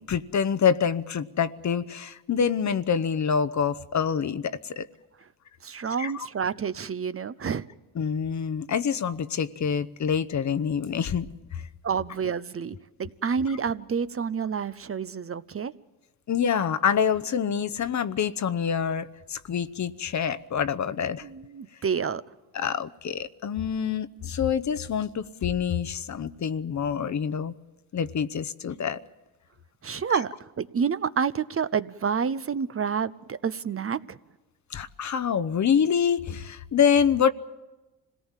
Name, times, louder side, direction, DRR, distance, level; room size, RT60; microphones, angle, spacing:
voice 1, 0.0-4.9 5.9-6.3 8.0-11.3 11.5-11.6 16.3-21.3 22.5-27.5 27.9-29.0 34.7-37.3, left 7 dB, 45° left, 12 dB, 0.9 m, -26 dB
voice 2, 5.6-7.6 11.8-15.7 21.2-22.2 29.8-34.2, right 6 dB, 35° right, 14 dB, 0.7 m, -29 dB
26.0 x 18.0 x 7.4 m, 1.1 s
cardioid pair, 75°, 39 cm